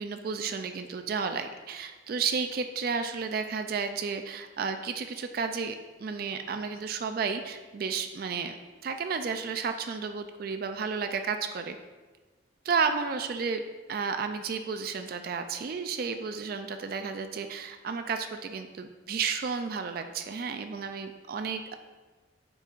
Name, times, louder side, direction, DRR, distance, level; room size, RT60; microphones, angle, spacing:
voice 1, 0.0-8.6 8.8-11.8 12.7-13.6 13.9-21.7, right 5 dB, 50° right, 7 dB, 0.3 m, -32 dB
8.1 x 5.3 x 2.4 m, 1.3 s
head